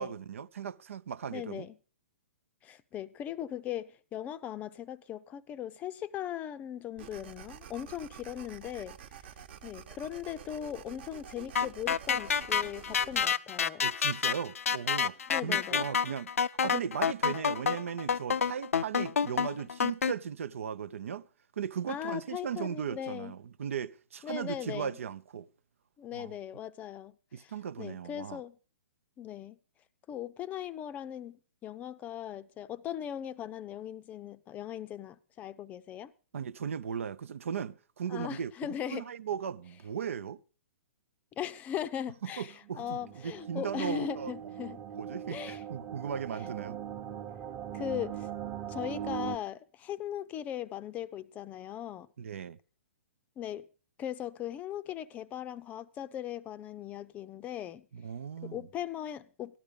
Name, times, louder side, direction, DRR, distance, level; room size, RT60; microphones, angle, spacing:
voice 1, 0.0-1.7 13.8-16.3 16.6-21.3 21.6-25.5 26.1-26.3 27.3-28.4 36.3-38.5 38.9-40.4 42.2-44.3 44.9-46.8 52.2-52.6 57.9-58.7, right 7 dB, 75° right, 0.7 m, -37 dB
voice 2, 1.3-1.8 2.6-9.0 9.6-13.8 15.3-15.9 21.9-23.3 24.2-24.9 26.0-27.5 27.8-28.6 29.2-29.6 30.1-31.4 31.6-36.1 38.1-39.1 41.4-44.8 45.3-45.6 47.7-48.3 48.7-52.1 53.4-53.7 54.0-57.9 58.4-59.6, left 10 dB, 20° left, 0.6 m, -39 dB
sound 1, 7.0-13.2, right 8 dB, 50° right, 1.2 m, -49 dB
sound 2, 11.6-20.1, left 7 dB, 85° left, 0.5 m, -28 dB
sound 3, 42.4-49.4, right 10 dB, 25° right, 0.9 m, -40 dB
13.5 x 11.0 x 5.1 m
hypercardioid pair, 135°, 7 cm